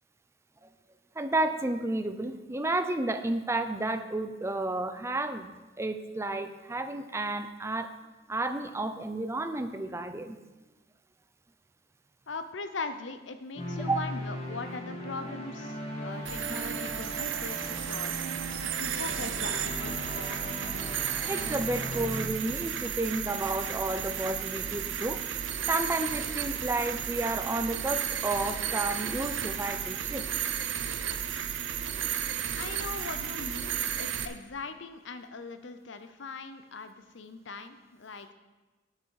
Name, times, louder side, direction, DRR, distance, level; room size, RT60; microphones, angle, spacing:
voice 1, 1.2-7.9 8.3-10.4 13.9-14.0 21.3-25.2 25.7-30.3, right 2 dB, 15° right, 8 dB, 0.5 m, -31 dB
voice 2, 12.3-18.2 18.6-20.3 32.5-38.3, left 3 dB, 70° left, 10 dB, 0.7 m, -40 dB
sound 1, 13.6-22.3, equal, 35° left, 2.1 m, -38 dB
sound 2, 16.3-34.3, right 9 dB, 75° right, 0.7 m, -33 dB
8.9 x 8.1 x 4.7 m, 1.2 s
head